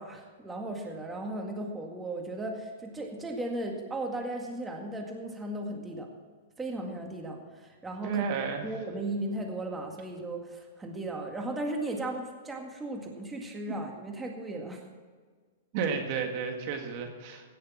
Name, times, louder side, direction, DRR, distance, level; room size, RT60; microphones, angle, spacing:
voice 1, 0.0-6.1 6.6-8.3 8.6-14.9, right 1 dB, 10° right, 1 dB, 1.9 m, -36 dB
voice 2, 8.0-8.7 13.7-13.8 15.7-17.5, right 6 dB, 50° right, 4 dB, 1.9 m, -32 dB
16.5 x 6.6 x 7.3 m, 1.5 s
hypercardioid pair, 130°, 0 cm